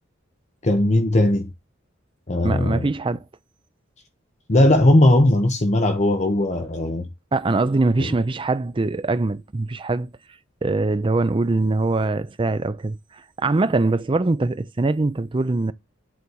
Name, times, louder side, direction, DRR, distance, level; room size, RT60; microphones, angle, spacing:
voice 1, 0.6-1.5 2.3-2.9 4.5-7.1 8.0-8.1, left 1 dB, 35° left, 0.9 m, -18 dB
voice 2, 2.4-3.2 7.3-10.1 10.6-13.0 13.4-15.7, right 3 dB, 25° right, 0.4 m, -22 dB
8.4 x 4.0 x 6.2 m
head